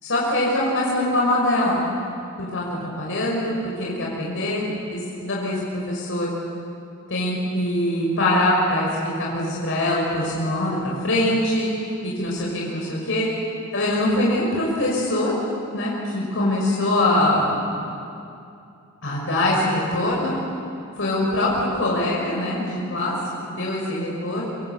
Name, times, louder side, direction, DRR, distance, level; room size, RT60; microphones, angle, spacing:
voice 1, 0.0-1.9 2.4-4.6 4.9-6.3 7.1-8.9 9.2-11.7 12.0-13.3 13.7-15.3 15.7-17.6 19.0-20.3 21.0-23.1 23.4-24.5, left 1 dB, 65° left, -4 dB, 6.1 m, -23 dB
27.0 x 23.0 x 8.2 m, 2.6 s
head